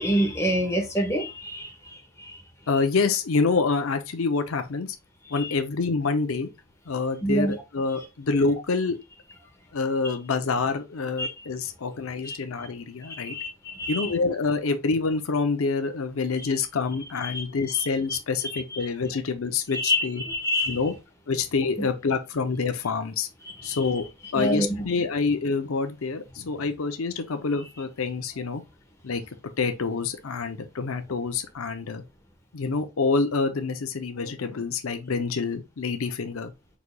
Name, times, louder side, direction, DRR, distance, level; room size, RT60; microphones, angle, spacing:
voice 1, 0.0-2.4 5.4-5.5 7.2-7.6 11.2-11.3 12.2-12.4 13.2-14.1 17.2-17.4 17.7-17.8 19.7-20.8 23.6-23.8 24.3-24.7, equal, 15° left, 1.2 m, -27 dB
voice 2, 2.7-5.0 5.3-6.5 6.9-9.0 9.7-13.4 13.9-20.2 20.7-20.9 21.3-23.3 23.6-24.0 24.3-28.6 29.0-29.2 29.6-32.0 32.5-36.5, left 4 dB, 80° left, 0.6 m, -27 dB
4.8 x 4.0 x 2.3 m
head